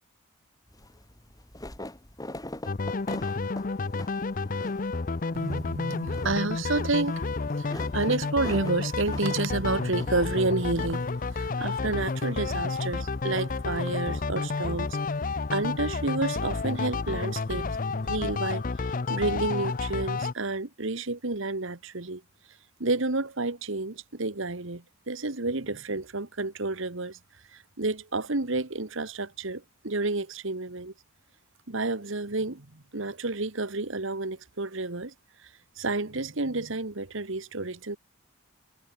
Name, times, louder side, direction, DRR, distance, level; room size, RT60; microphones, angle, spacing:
sound 1, 0.7-18.5, left 1 dB, 15° left, 2.4 m, -46 dB
sound 2, 2.6-20.3, left 3 dB, 40° left, 0.6 m, -30 dB
voice 1, 5.3-7.2 7.6-15.0 15.5-22.2 22.8-27.2 27.5-30.9 31.7-35.1 35.4-38.0, right 2 dB, 60° right, 1.4 m, -30 dB
head